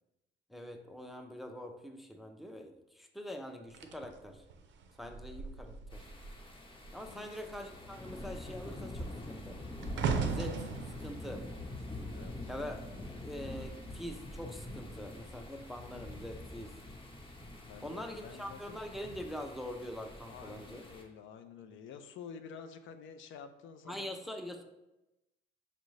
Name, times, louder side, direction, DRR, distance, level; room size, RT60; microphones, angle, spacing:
voice 1, 0.5-4.4 5.0-6.1 6.9-9.6 10.2-10.7 11.0-11.4 12.5-12.8 13.2-16.7 17.8-20.8 23.8-24.6, equal, ahead, 4 dB, 0.4 m, -44 dB
sound 1, 3.7-6.5 6.8-7.1 7.5-12.8 13.5-13.8, right 5 dB, 70° right, 0.5 m, -39 dB
sound 2, 5.9-21.0, left 1 dB, 25° left, 0.8 m, -45 dB
voice 2, 7.1-7.5 12.1-12.5 17.6-18.8 20.3-24.1, left 6 dB, 75° left, 9 dB, 0.4 m, -50 dB
5.3 x 2.5 x 3.1 m, 0.96 s
cardioid pair, 90°, 20 cm